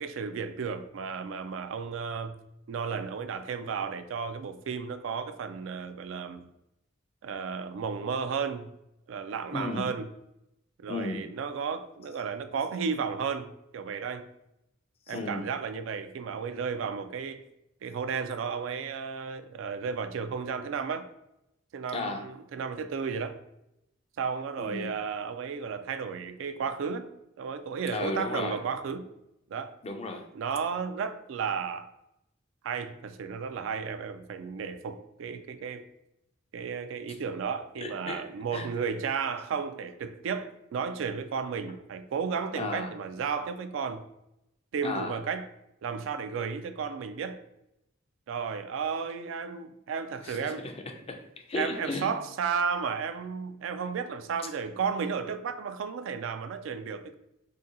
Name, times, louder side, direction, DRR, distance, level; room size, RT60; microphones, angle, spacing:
voice 1, 0.0-2.4 2.7-6.5 7.2-8.7 9.1-10.1 10.8-14.3 15.1-17.4 17.8-21.1 21.7-23.4 24.2-27.1 27.4-29.1 29.5-29.7 30.3-31.9 32.6-35.9 36.5-44.0 44.7-45.5 45.8-47.4 48.3-50.6 51.6-57.1, right 6 dB, 70° right, 0.3 m, -33 dB
voice 2, 9.5-9.9 10.9-11.2 15.1-15.5 21.9-22.3 24.6-24.9 27.9-28.6 29.8-30.2 37.8-38.3 38.5-38.7 42.6-42.9 44.8-45.2 50.2-52.1, left 2 dB, 30° left, 0.4 m, -34 dB
2.8 x 2.6 x 3.7 m
head